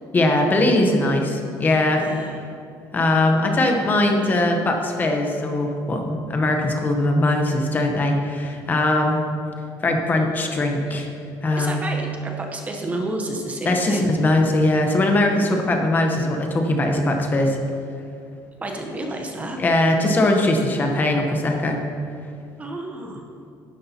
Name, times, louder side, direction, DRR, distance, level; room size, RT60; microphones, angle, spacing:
voice 1, 0.1-2.0 2.9-9.2 9.8-11.1 11.4-11.8 13.6-17.6 19.6-21.8, left 1 dB, 25° left, 3 dB, 0.8 m, -20 dB
voice 2, 2.0-2.4 11.5-14.1 18.6-19.6 22.6-23.3, right 1 dB, 20° right, 2 dB, 0.8 m, -30 dB
11.5 x 11.0 x 2.8 m, 2.6 s
cardioid pair, 170°, 8 cm